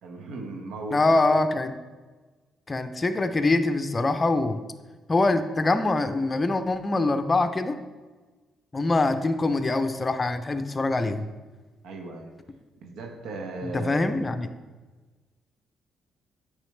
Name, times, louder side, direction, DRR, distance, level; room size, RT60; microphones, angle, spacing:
voice 1, 0.0-1.2 11.8-12.3 12.8-14.1, right 2 dB, 80° right, 2 dB, 0.9 m, -37 dB
voice 2, 0.9-1.8 2.7-4.6 5.1-7.8 8.7-11.3 13.7-14.5, left 2 dB, 25° left, 8 dB, 0.5 m, -24 dB
8.9 x 4.9 x 3.2 m, 1.3 s
cardioid pair, 90°, 0 cm